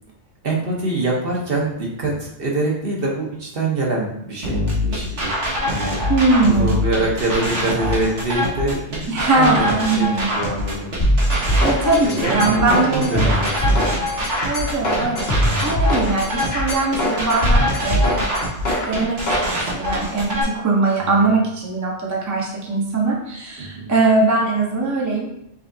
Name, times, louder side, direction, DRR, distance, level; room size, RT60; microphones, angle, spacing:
voice 1, 0.4-5.4 5.7-6.0 6.5-11.0 12.0-14.0 14.8-15.1 21.0-21.1 23.6-24.0, right 2 dB, 55° right, -3 dB, 1.2 m, -25 dB
sound 1, 4.4-20.4, left 1 dB, 85° right, 1.6 m, -25 dB
voice 2, 6.1-6.7 9.1-10.3 11.6-13.5 14.4-18.3 18.9-25.3, right 3 dB, 20° right, -2 dB, 0.7 m, -21 dB
sound 2, 11.0-19.5, equal, 65° left, 1.3 m, -21 dB
5.5 x 3.4 x 2.7 m, 0.79 s
omnidirectional pair, 1.2 m